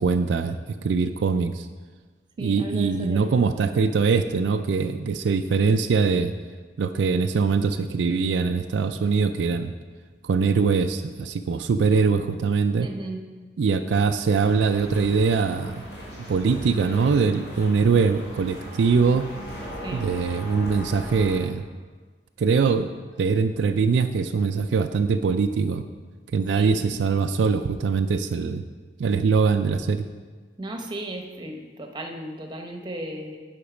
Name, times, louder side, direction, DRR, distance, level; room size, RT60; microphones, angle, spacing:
voice 1, 0.0-1.7 2.4-6.3 6.8-9.7 10.2-12.9 13.6-15.8 16.3-19.3 19.9-21.6 22.4-22.9 23.2-25.8 26.3-28.6 29.0-30.0, right 5 dB, 80° right, 8 dB, 0.4 m, -22 dB
voice 2, 2.4-3.5 12.8-13.2 19.8-20.1 26.5-26.9 30.6-33.4, right 1 dB, 25° right, 3 dB, 0.9 m, -35 dB
sound 1, 14.4-21.4, equal, 65° left, 2.6 m, -38 dB
10.0 x 5.2 x 5.0 m, 1.4 s
head